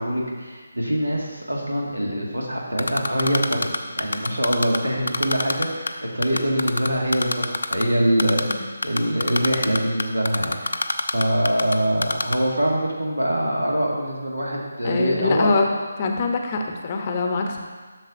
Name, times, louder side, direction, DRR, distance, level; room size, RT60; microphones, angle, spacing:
voice 1, 0.0-3.7 4.0-10.8 11.1-15.5, equal, 80° right, -2 dB, 1.8 m, -24 dB
Typing, 2.8-4.8 5.1-5.9 6.2-7.8 8.2-8.5 8.8-11.7 12.0-12.4, left 3 dB, 65° left, 0.5 m, -23 dB
voice 2, 14.8-15.7 16.0-17.6, left 3 dB, 30° left, 3 dB, 0.7 m, -23 dB
11.0 x 6.5 x 2.6 m, 1.4 s
figure-of-eight pair, 150°, 0 cm